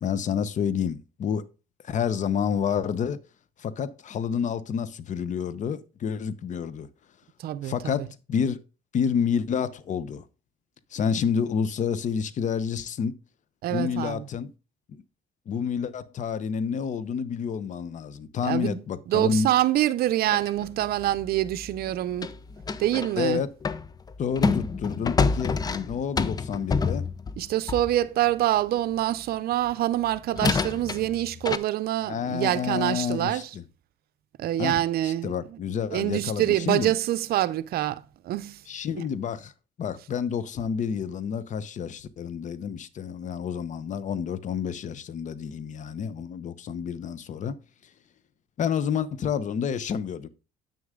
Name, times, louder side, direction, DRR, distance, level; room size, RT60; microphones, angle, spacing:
voice 1, 0.0-1.4 1.8-3.2 3.6-6.9 7.6-8.6 8.9-10.2 10.9-13.1 13.7-14.5 14.9-15.0 15.5-19.5 23.2-23.5 24.2-27.0 32.0-33.6 34.6-36.9 38.7-39.5 39.8-47.6 48.6-50.3, left 7 dB, 45° left, 0.8 m, -29 dB
voice 2, 7.4-7.9 13.6-14.2 18.4-18.8 19.1-22.3 22.8-23.4 27.4-33.5 34.4-35.3 35.9-38.6 38.9-39.0, right 14 dB, 65° right, 0.6 m, -26 dB
sound 1, 20.3-23.2 23.6-28.0 29.7-29.8 30.3-31.6, left 4 dB, 25° left, 0.5 m, -28 dB
8.7 x 6.5 x 3.7 m
cardioid pair, 110°, 17 cm